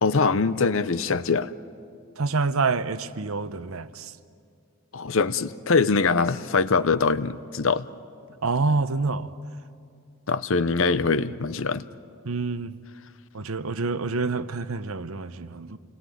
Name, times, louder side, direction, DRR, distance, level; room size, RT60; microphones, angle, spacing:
voice 1, 0.0-1.5 4.9-7.8 10.3-11.8, left 4 dB, 65° left, 0.7 m, -23 dB
voice 2, 2.2-4.1 8.4-9.3 12.2-12.8 13.3-15.8, right 4 dB, 75° right, 0.9 m, -27 dB
29.0 x 21.5 x 9.3 m
head